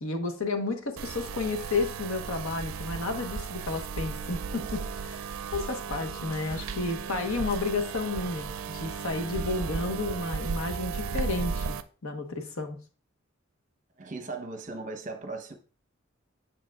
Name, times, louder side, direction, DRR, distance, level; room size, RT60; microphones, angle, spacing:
voice 1, 0.0-11.7 12.0-12.8, left 3 dB, 85° left, 1.2 m, -32 dB
sound 1, 1.0-11.8, right 5 dB, 85° right, 0.4 m, -35 dB
voice 2, 14.0-15.6, right 3 dB, 40° right, 0.9 m, -37 dB
7.6 x 6.3 x 2.4 m
head